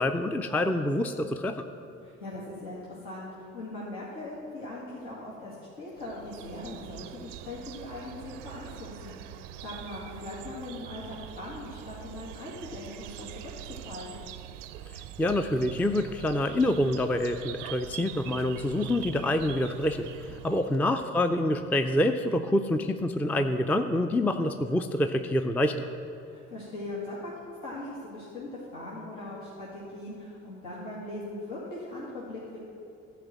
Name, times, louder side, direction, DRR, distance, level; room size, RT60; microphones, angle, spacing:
voice 1, 0.0-1.6 14.9-25.9, left 1 dB, 5° left, 7 dB, 0.4 m, -27 dB
voice 2, 2.0-9.3 9.6-13.4 13.7-14.2 20.5-20.7 26.2-27.3 27.6-32.6, left 2 dB, 75° left, -8 dB, 2.1 m, -40 dB
sound 1, 6.0-20.8, right 11 dB, 80° right, 0.5 m, -44 dB
12.0 x 5.0 x 7.5 m, 2.7 s
hypercardioid pair, 55°, 36 cm